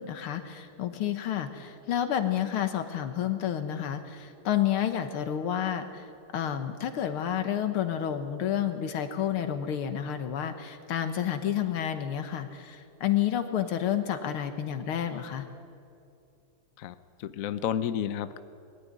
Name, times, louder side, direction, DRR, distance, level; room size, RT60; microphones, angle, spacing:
voice 1, 0.0-6.1 6.3-15.5, left 10 dB, 85° left, 8 dB, 2.1 m, -30 dB
voice 2, 16.8-18.4, left 9 dB, 65° left, 12 dB, 0.8 m, -31 dB
21.0 x 13.5 x 9.7 m, 2.5 s
omnidirectional pair, 2.3 m